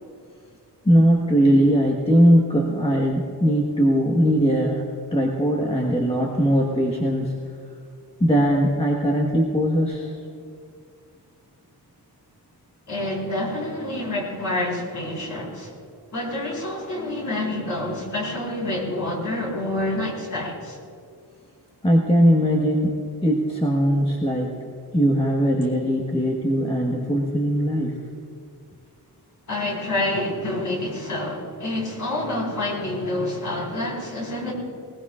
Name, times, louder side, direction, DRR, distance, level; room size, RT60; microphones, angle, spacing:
voice 1, 0.8-4.8 5.1-7.3 8.2-10.2 21.8-24.5 24.9-28.0, equal, 15° left, -1 dB, 1.4 m, -20 dB
voice 2, 12.9-15.7 16.1-20.8 29.5-34.5, left 1 dB, 45° left, -3 dB, 4.4 m, -27 dB
20.5 x 20.0 x 2.5 m, 2.2 s
wide cardioid pair, 135°, 41 cm